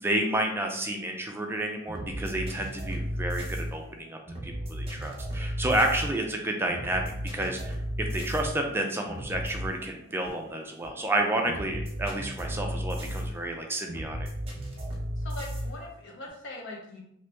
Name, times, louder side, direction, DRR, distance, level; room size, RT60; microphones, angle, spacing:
voice 1, 0.0-14.3, right 1 dB, 10° right, 2 dB, 0.3 m, -30 dB
sound 1, 1.6-16.3, equal, 30° right, 1.0 m, -35 dB
voice 2, 15.2-17.0, left 1 dB, 65° left, -1 dB, 0.9 m, -41 dB
2.9 x 2.8 x 3.3 m, 0.74 s
head